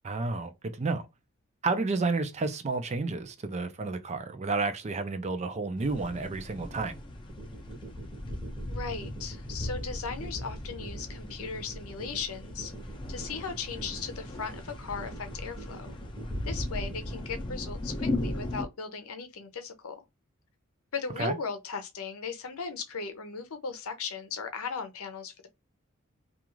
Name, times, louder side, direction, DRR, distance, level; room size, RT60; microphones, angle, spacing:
voice 1, 0.0-1.1 1.6-7.0 21.2-21.3, right 3 dB, 30° right, 0.4 m, -31 dB
sound 1, 5.8-18.6, left 1 dB, 25° left, 0.5 m, -37 dB
sound 2, 7.3-17.3, right 3 dB, 10° right, 0.8 m, -46 dB
voice 2, 8.7-12.7 13.1-15.9 16.4-19.9 20.9-25.5, left 5 dB, 90° left, 0.6 m, -37 dB
2.4 x 2.4 x 3.0 m
head